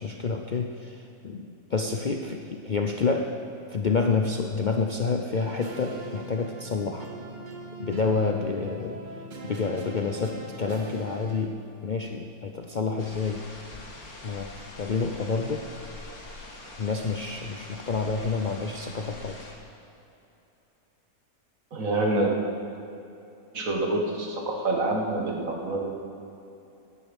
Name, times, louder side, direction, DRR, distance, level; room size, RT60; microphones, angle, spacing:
voice 1, 0.0-3.3 3.7-7.1 7.8-9.0 9.4-13.5 14.2-15.7 16.8-19.4, left 4 dB, 45° left, 3 dB, 0.6 m, -28 dB
sound 1, 5.3-11.5, right 2 dB, 35° right, 1.1 m, -41 dB
sound 2, 13.0-19.5, left 2 dB, 75° left, 2.4 m, -44 dB
voice 2, 21.7-22.3 23.5-25.9, right 2 dB, 65° right, 1 dB, 2.1 m, -26 dB
17.5 x 9.7 x 5.3 m, 2.8 s
omnidirectional pair, 1.6 m